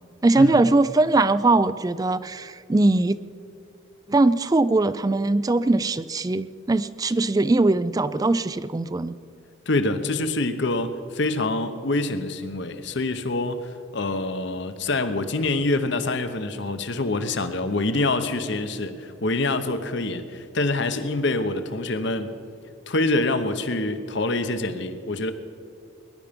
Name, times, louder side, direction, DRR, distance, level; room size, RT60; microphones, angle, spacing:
voice 1, 0.2-3.2 4.1-9.2, right 2 dB, 20° right, 15 dB, 0.3 m, -21 dB
voice 2, 9.7-22.3 22.9-25.3, left 2 dB, 60° left, 10 dB, 1.0 m, -26 dB
20.5 x 11.0 x 5.2 m, 2.4 s
head